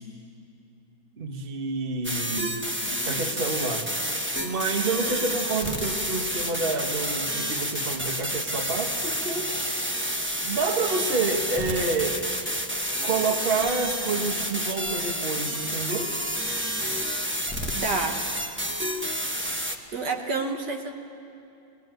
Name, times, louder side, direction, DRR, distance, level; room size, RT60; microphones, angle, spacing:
voice 1, 1.2-2.6 3.0-3.9 4.4-9.5 10.4-12.2 13.0-16.2, right 3 dB, 30° right, 5 dB, 1.3 m, -28 dB
sound 1, 2.0-19.8, equal, 10° right, 0.6 m, -29 dB
voice 2, 17.7-18.2 19.9-20.9, right 3 dB, 60° right, 3 dB, 1.7 m, -28 dB
20.5 x 19.5 x 9.1 m, 2.7 s
omnidirectional pair, 2.2 m